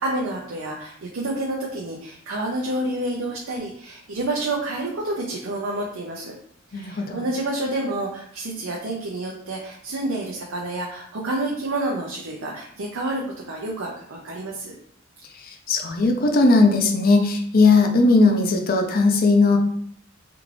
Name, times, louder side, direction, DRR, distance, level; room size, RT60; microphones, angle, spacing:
voice 1, 0.0-6.3 6.7-14.7, right 2 dB, 80° right, -2 dB, 0.6 m, -29 dB
voice 2, 6.7-7.2 15.4-19.6, left 3 dB, 50° left, 4 dB, 0.5 m, -18 dB
3.4 x 2.4 x 3.2 m, 0.63 s
head